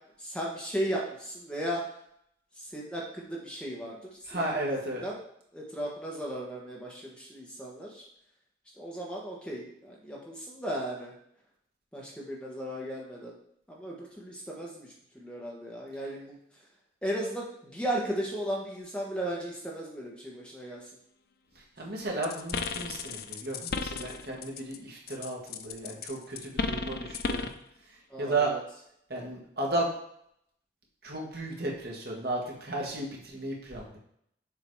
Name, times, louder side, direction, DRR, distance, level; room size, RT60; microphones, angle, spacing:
voice 1, 0.2-1.9 2.5-5.2 5.5-8.0 8.8-11.1 11.9-13.3 13.7-16.6 17.0-20.9 28.1-28.6, right 1 dB, 5° left, -4 dB, 1.4 m, -36 dB
voice 2, 4.3-5.0 21.8-27.5 28.2-28.5 29.1-29.9 31.0-34.0, right 2 dB, 55° right, -2 dB, 1.7 m, -33 dB
sound 1, 22.2-24.8 25.1-27.6, left 4 dB, 55° left, 0.4 m, -34 dB
7.1 x 3.9 x 4.8 m, 0.71 s
head